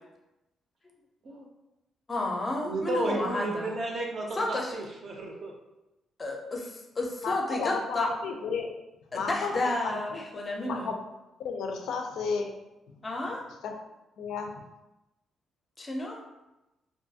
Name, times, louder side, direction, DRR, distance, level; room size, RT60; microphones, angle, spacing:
voice 1, 2.1-3.7 4.3-4.8 6.2-8.1 9.1-11.0 13.0-13.4 15.8-16.2, left 2 dB, 25° left, 0 dB, 0.5 m, -31 dB
voice 2, 2.6-4.4 4.7-5.5 10.8-10.9, right 2 dB, 45° right, 0 dB, 0.4 m, -32 dB
voice 3, 7.2-8.7 9.1-10.2 10.6-11.0 11.4-12.5 13.6-13.7 14.2-14.6, left 5 dB, 85° left, 3 dB, 0.4 m, -33 dB
2.5 x 2.3 x 2.7 m, 0.97 s
cardioid pair, 145°, 0 cm